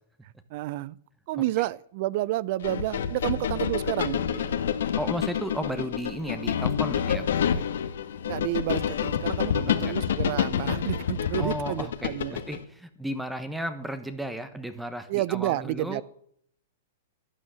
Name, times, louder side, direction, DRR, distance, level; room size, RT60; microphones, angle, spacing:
voice 1, 0.2-1.0 1.3-4.6 8.2-12.4 15.1-16.0, right 17 dB, 50° right, 23 dB, 0.6 m, -30 dB
sound 1, 2.6-12.6, left 8 dB, 75° left, 1.4 m, -28 dB
voice 2, 5.0-7.6 9.5-9.9 11.4-16.0, right 1 dB, 5° right, 11 dB, 1.1 m, -34 dB
12.5 x 9.5 x 7.6 m, 0.65 s
hypercardioid pair, 140°, 0 cm